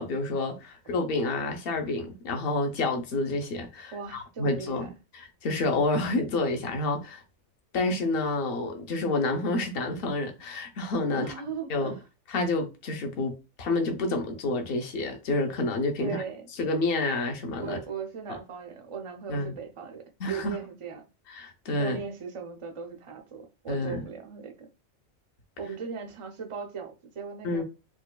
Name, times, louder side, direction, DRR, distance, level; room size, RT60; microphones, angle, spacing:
voice 1, 0.0-7.2 7.7-11.3 11.7-11.9 12.3-16.2 16.6-17.8 18.3-18.4 19.3-19.5 20.2-20.6 21.3-22.0 23.7-24.0 27.4-27.6, left 2 dB, 50° left, 0.8 m, -29 dB
voice 2, 3.9-4.9 11.1-12.0 16.0-16.5 17.6-21.0 21.8-24.7 25.6-27.6, right 5 dB, 50° right, 0.3 m, -38 dB
4.4 x 2.4 x 2.3 m
omnidirectional pair, 1.4 m